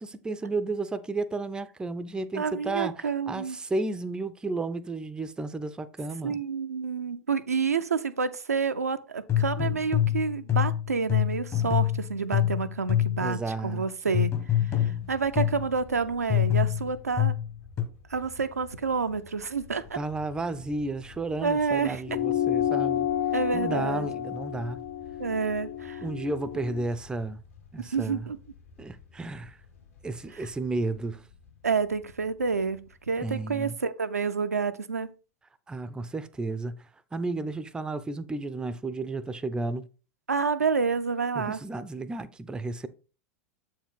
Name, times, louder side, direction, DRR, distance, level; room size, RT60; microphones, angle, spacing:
voice 1, 0.0-6.4 13.2-13.9 19.9-23.1 23.5-24.8 26.0-27.4 27.7-28.3 28.8-29.6 30.0-31.2 33.2-33.8 35.7-39.9 41.4-42.9, right 2 dB, 10° right, 0.4 m, -33 dB
voice 2, 2.3-3.6 6.2-13.4 13.6-14.3 14.8-17.3 18.1-20.0 21.4-22.0 23.3-24.1 25.2-26.0 27.8-28.4 31.6-35.1 40.3-41.6, right 5 dB, 85° right, 0.4 m, -29 dB
sound 1, 9.3-13.3 14.1-15.7 16.3-17.8, left 11 dB, 30° left, 1.1 m, -26 dB
sound 2, 14.8-33.8, left 5 dB, 70° left, 1.9 m, -52 dB
sound 3, 22.1-26.9, left 10 dB, 55° left, 0.4 m, -30 dB
7.2 x 4.7 x 3.5 m
figure-of-eight pair, 90°, 8 cm